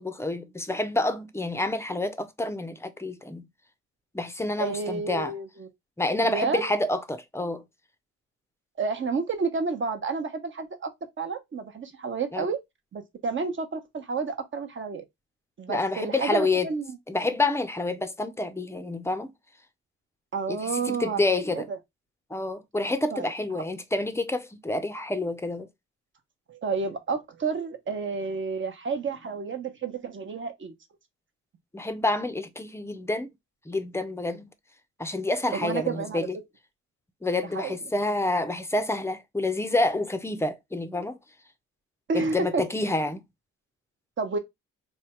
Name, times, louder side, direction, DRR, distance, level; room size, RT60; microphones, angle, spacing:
voice 1, 0.0-3.4 4.1-5.3 6.0-7.6 12.3-12.5 15.7-16.7 17.1-19.3 20.5-21.7 22.3-25.7 31.7-33.3 33.7-34.5 35.0-36.4 37.2-41.2 42.1-43.2, left 2 dB, 10° left, 0.6 m, -28 dB
voice 2, 4.6-5.7 6.2-6.7 8.8-10.9 11.2-12.6 12.9-15.0 15.6-17.0 20.3-21.2 21.5-21.8 23.1-23.3 26.5-30.7 35.5-36.3 37.5-37.8 42.1-42.6 44.2-44.4, right 4 dB, 40° right, 1.0 m, -30 dB
3.5 x 2.3 x 4.3 m
cardioid pair, 90°, 30 cm